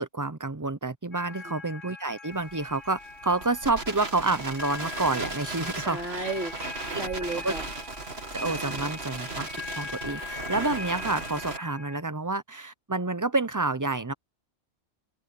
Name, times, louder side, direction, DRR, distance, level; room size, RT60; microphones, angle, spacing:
voice 1, 0.0-6.3 7.4-7.5 8.3-9.5 9.7-14.1, right 3 dB, 20° right, 0.7 m, -29 dB
sound 1, 1.1-12.0, left 3 dB, 85° left, 8.3 m, -42 dB
Crackle, 2.3-11.6, right 3 dB, 55° right, 3.0 m, -37 dB
voice 2, 5.8-7.7, right 3 dB, 70° right, 4.6 m, -34 dB
omnidirectional pair, 1.3 m